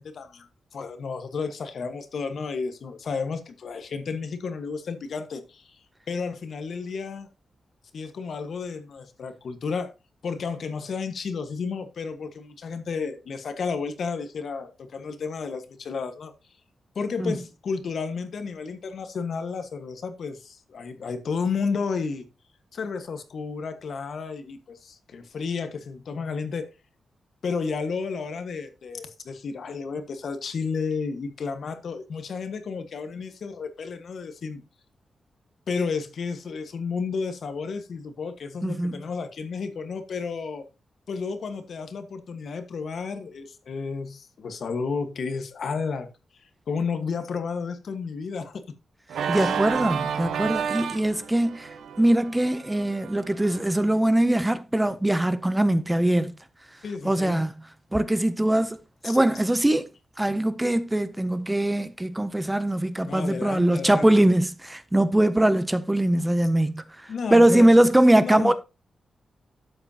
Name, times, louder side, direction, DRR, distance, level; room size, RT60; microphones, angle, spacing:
voice 1, 0.0-5.8 6.1-7.3 7.9-9.9 10.2-16.3 16.9-22.2 22.7-26.7 27.4-34.6 35.7-40.7 41.1-46.1 46.4-48.8 49.3-49.6 56.8-57.4 59.0-59.2 63.0-64.2 67.1-67.9 68.2-68.5, left 5 dB, 55° left, 1.4 m, -32 dB
voice 2, 38.6-39.0 49.3-56.4 57.0-57.5 57.9-58.8 59.0-59.9 60.2-68.5, right 1 dB, 10° right, 0.5 m, -22 dB
Organ, 49.1-53.9, right 7 dB, 90° right, 0.8 m, -31 dB
12.0 x 8.1 x 2.8 m
wide cardioid pair, 150°, 0 cm